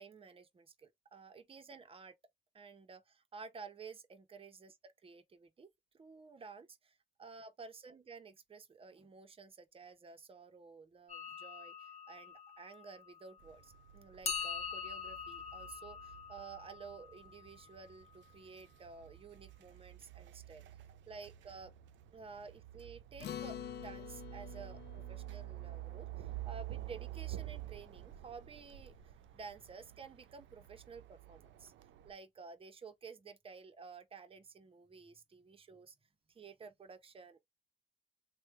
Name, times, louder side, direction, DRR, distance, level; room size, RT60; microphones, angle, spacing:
voice 1, 0.0-2.2 2.5-20.8 21.1-21.7 22.1-31.7 32.0-35.9 36.3-37.4, right 5 dB, 30° right, 0.7 m, -53 dB
sound 1, 11.1-13.5 14.2-18.1, left 5 dB, 30° left, 0.9 m, -44 dB
sound 2, 13.4-32.1, right 15 dB, 70° right, 0.5 m, -50 dB
Acoustic guitar, 23.2-27.9, left 11 dB, 60° left, 0.4 m, -49 dB
3.2 x 2.1 x 3.1 m
cardioid pair, 90°, 20 cm